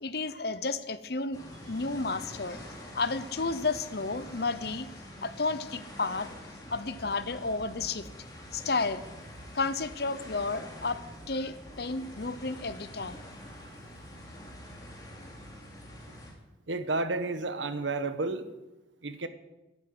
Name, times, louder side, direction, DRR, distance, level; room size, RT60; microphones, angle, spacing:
voice 1, 0.0-1.4 1.7-4.9 5.2-6.3 6.7-8.1 8.5-9.0 9.5-11.0 11.3-13.2, left 3 dB, 55° left, 13 dB, 0.9 m, -32 dB
sound 1, 1.3-16.3, equal, 20° left, 3.1 m, -46 dB
voice 2, 16.7-18.5 19.0-19.3, right 3 dB, 80° right, 10 dB, 1.3 m, -31 dB
14.0 x 9.3 x 9.4 m, 1.0 s
head